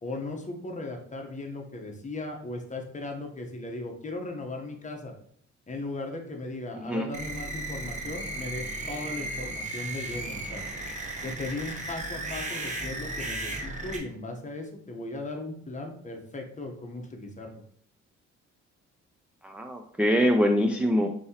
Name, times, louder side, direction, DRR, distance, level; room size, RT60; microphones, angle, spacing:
voice 1, 0.0-5.1 5.7-10.6 11.2-17.5, left 2 dB, 25° left, 2 dB, 0.9 m, -37 dB
voice 2, 6.7-7.1 19.4-21.1, equal, 5° right, 4 dB, 0.3 m, -24 dB
sound 1, 7.1-14.0, right 2 dB, 25° right, 1.0 m, -35 dB
5.3 x 2.8 x 2.8 m, 0.63 s
cardioid pair, 90°, 30 cm